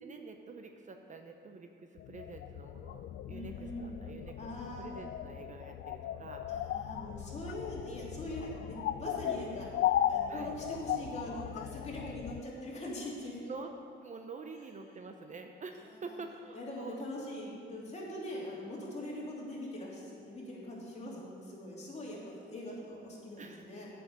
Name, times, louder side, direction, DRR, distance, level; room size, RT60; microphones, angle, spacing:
voice 1, 0.0-4.5 4.8-6.5 10.3-10.5 13.4-13.7 14.0-17.6 21.0-21.2 23.4-23.7, right 4 dB, 40° right, 5 dB, 0.7 m, -47 dB
sound 1, 2.0-12.4, left 11 dB, 70° left, 0.4 m, -37 dB
voice 2, 3.3-4.1 4.4-4.9 6.5-9.7 10.1-13.4 16.5-23.9, left 1 dB, 35° left, -5 dB, 2.9 m, -42 dB
8.3 x 6.1 x 7.9 m, 2.4 s
cardioid pair, 90°, 20 cm